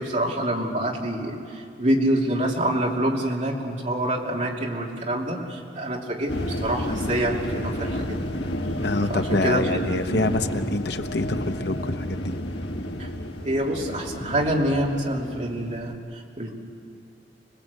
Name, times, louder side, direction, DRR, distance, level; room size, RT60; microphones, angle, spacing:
voice 1, 0.0-8.2 9.1-10.4 13.0-13.1 13.4-16.5, right 1 dB, 40° right, -1 dB, 2.8 m, -26 dB
sound 1, 6.3-15.9, left 1 dB, 85° left, 1.8 m, -31 dB
voice 2, 8.8-12.4, left 2 dB, 65° left, 7 dB, 1.0 m, -26 dB
26.0 x 20.0 x 8.3 m, 2.3 s
head